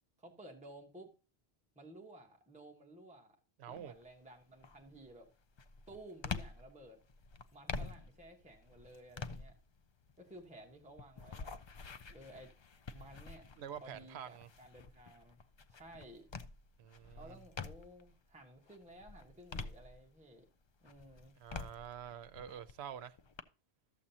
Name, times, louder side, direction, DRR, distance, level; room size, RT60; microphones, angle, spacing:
voice 1, 0.2-1.1 1.7-3.4 3.7-5.3 5.9-7.0 7.5-9.6 10.2-11.5 12.1-12.5 12.9-13.5 13.8-15.4 15.7-16.3 17.2-20.5 20.8-21.4, right 1 dB, 5° right, 1.1 m, -55 dB
voice 2, 3.6-3.9 13.6-14.5 16.8-17.4 21.4-23.2, right 9 dB, 90° right, 0.9 m, -47 dB
sound 1, 3.7-4.1 4.6-18.1 18.6-20.4 20.8-23.4, left 5 dB, 50° left, 0.3 m, -47 dB
sound 2, 17.0-19.1, right 1 dB, 20° left, 3.8 m, -72 dB
13.0 x 7.4 x 2.8 m
omnidirectional pair, 1.1 m